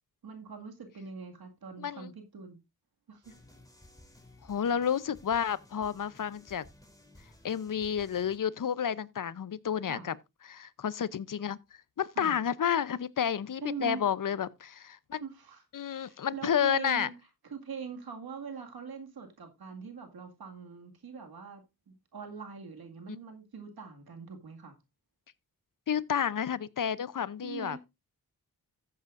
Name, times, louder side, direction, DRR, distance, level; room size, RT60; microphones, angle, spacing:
voice 1, 0.2-2.6 3.1-3.3 9.9-10.1 12.2-12.4 13.6-14.0 15.2-15.6 16.0-17.2 17.4-24.7 27.4-27.8, right 5 dB, 80° right, 2.1 m, -42 dB
voice 2, 1.8-2.1 4.4-6.6 7.4-10.2 10.5-11.6 12.0-15.2 15.7-17.1 25.9-27.9, left 8 dB, 60° left, 0.7 m, -31 dB
sound 1, 3.2-8.4, left 1 dB, 10° left, 3.5 m, -57 dB
14.5 x 8.2 x 2.5 m
cardioid pair, 45°, 36 cm